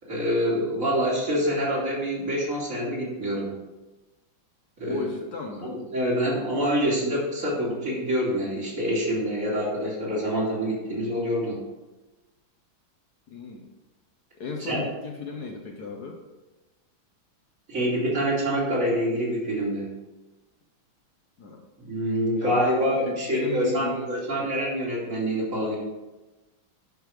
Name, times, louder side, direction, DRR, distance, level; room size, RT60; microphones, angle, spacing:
voice 1, 0.0-3.5 4.8-5.1 5.6-11.6 14.6-14.8 17.7-19.9 21.8-25.8, equal, 40° right, -5 dB, 3.2 m, -26 dB
voice 2, 4.8-5.7 13.3-13.7 14.4-16.2 21.4-21.6 22.4-24.1 24.4-24.5, left 4 dB, 55° left, 1 dB, 1.4 m, -35 dB
11.0 x 5.6 x 4.9 m, 1.1 s
omnidirectional pair, 2.2 m